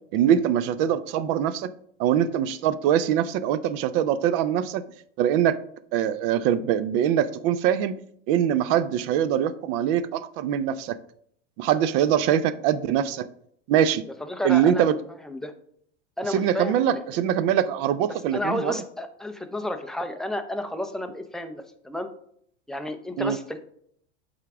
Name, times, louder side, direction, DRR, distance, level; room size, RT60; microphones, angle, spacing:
voice 1, 0.1-1.7 2.0-4.8 5.2-5.6 5.9-7.9 8.3-11.0 11.6-13.3 13.7-14.0 14.4-14.9 16.3-18.8 23.2-23.4, right 10 dB, 50° right, 15 dB, 0.5 m, -23 dB
voice 2, 14.3-14.9 15.2-15.5 16.2-17.0 18.3-22.1 22.7-23.6, left 1 dB, ahead, 6 dB, 0.4 m, -31 dB
8.3 x 3.7 x 3.5 m, 0.66 s
hypercardioid pair, 115°, 36 cm